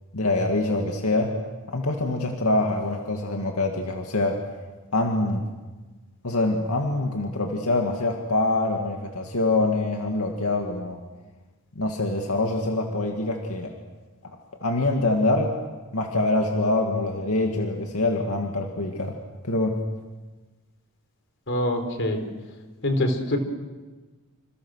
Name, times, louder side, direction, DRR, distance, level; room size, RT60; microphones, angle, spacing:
voice 1, 0.1-1.4 1.7-4.4 4.9-5.4 6.2-11.0 11.8-13.7 14.6-15.5 15.9-19.2 19.4-19.8, left 2 dB, 85° left, 2 dB, 2.3 m, -25 dB
voice 2, 21.5-22.2 22.8-23.4, left 1 dB, 60° left, 6 dB, 4.1 m, -24 dB
28.0 x 27.5 x 6.5 m, 1.3 s
head